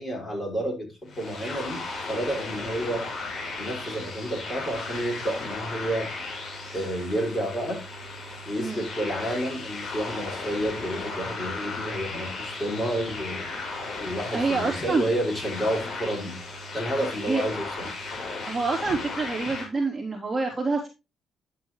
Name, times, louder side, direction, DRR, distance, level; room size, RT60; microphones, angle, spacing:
voice 1, 0.0-3.0 3.6-6.1 6.7-7.8 8.4-13.5 14.0-16.3 16.7-17.9, equal, 25° left, -1 dB, 5.9 m, -30 dB
sound 1, 1.1-19.7, left 3 dB, 50° left, 5.6 m, -36 dB
voice 2, 14.3-15.1 17.2-17.4 18.5-20.9, right 3 dB, 10° right, -5 dB, 3.4 m, -27 dB
11.5 x 7.0 x 3.2 m, 0.26 s
cardioid pair, 90°, 0 cm